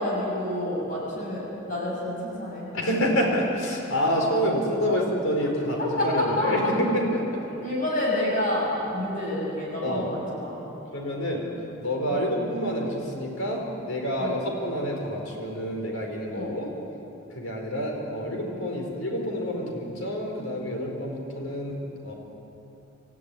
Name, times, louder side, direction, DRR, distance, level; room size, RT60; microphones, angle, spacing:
voice 1, 0.0-2.7 5.8-6.5 7.5-10.5 14.2-14.3 16.4-16.6, left 1 dB, 40° left, -3 dB, 7.2 m, -28 dB
voice 2, 2.7-7.2 9.8-10.1 10.9-11.4 11.8-16.7 17.3-21.8 22.0-22.1, equal, 80° left, 0 dB, 4.8 m, -28 dB
26.5 x 14.5 x 9.5 m, 3.0 s
head